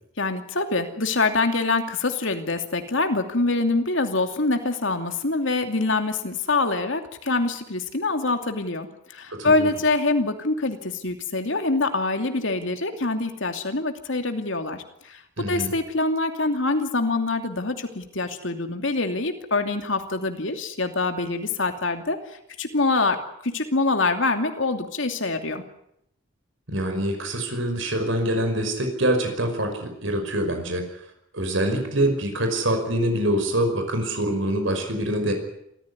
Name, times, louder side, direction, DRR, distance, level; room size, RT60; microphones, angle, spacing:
voice 1, 0.2-22.2 22.6-25.6, left 3 dB, 70° left, 6 dB, 2.6 m, -25 dB
voice 2, 9.3-9.7 15.4-15.7 26.7-30.8 31.3-35.3, right 1 dB, 70° right, 5 dB, 5.4 m, -25 dB
27.0 x 14.5 x 9.8 m, 0.78 s
head